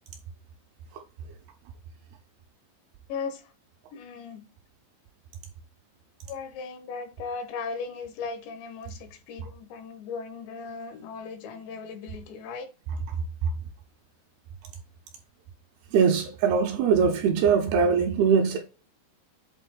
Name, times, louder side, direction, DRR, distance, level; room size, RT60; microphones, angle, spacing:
voice 1, 3.1-3.4 3.9-4.5 6.3-12.7, left 5 dB, 80° left, 3.3 m, -37 dB
voice 2, 15.9-18.6, right 6 dB, 75° right, 2.4 m, -22 dB
8.2 x 3.6 x 3.7 m
omnidirectional pair, 5.1 m